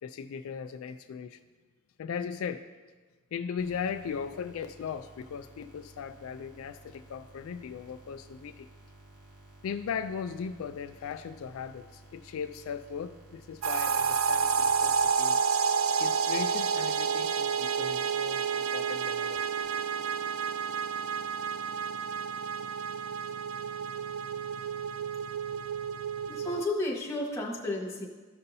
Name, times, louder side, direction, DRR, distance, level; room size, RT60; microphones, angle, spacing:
voice 1, 0.0-1.4 2.0-2.7 3.3-8.7 9.6-15.4 16.0-19.5, left 6 dB, 75° left, 10 dB, 0.3 m, -38 dB
sound 1, 3.6-15.0, right 1 dB, 45° right, 1.7 m, -54 dB
sound 2, 13.6-26.7, right 6 dB, 70° right, 0.3 m, -30 dB
voice 2, 26.3-28.1, left 2 dB, 15° left, -3 dB, 1.3 m, -32 dB
14.0 x 5.4 x 2.7 m, 1.3 s
head